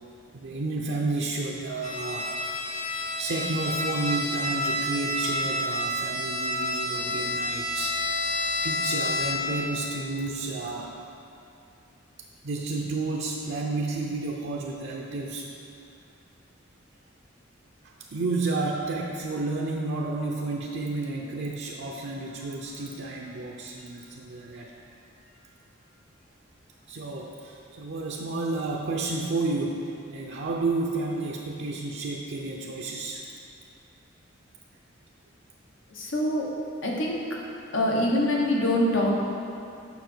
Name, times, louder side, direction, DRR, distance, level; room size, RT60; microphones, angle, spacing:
voice 1, 0.3-2.5 3.2-10.9 12.4-15.5 17.8-24.7 25.2-25.5 26.9-33.2, right 3 dB, 65° right, -2 dB, 0.5 m, -31 dB
Bowed string instrument, 1.8-9.6, left 1 dB, 40° left, 0.9 m, -29 dB
voice 2, 35.9-36.4 36.8-37.2 37.7-39.1, left 1 dB, 85° left, -2 dB, 1.2 m, -24 dB
7.1 x 5.8 x 4.5 m, 2.6 s
head